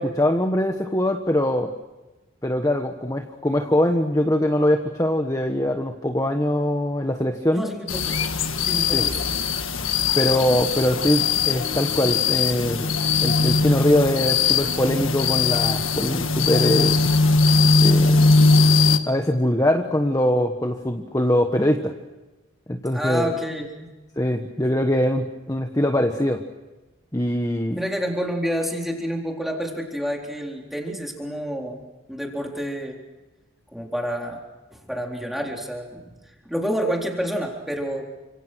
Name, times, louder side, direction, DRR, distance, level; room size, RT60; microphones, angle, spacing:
voice 1, 0.0-1.7 2.4-7.7 8.9-9.1 10.1-12.9 13.2-17.0 17.8-18.5 19.1-21.9 22.7-23.3 24.2-26.4 27.1-27.8, left 1 dB, 15° left, 5 dB, 1.3 m, -22 dB
voice 2, 7.5-8.2 8.6-9.2 22.9-23.9 27.7-31.8 32.1-33.0 33.7-34.4 34.7-38.1, equal, ahead, 0 dB, 3.9 m, -29 dB
sound 1, 7.9-19.0, left 4 dB, 70° left, 1.7 m, -20 dB
30.0 x 26.5 x 6.4 m, 1.1 s
head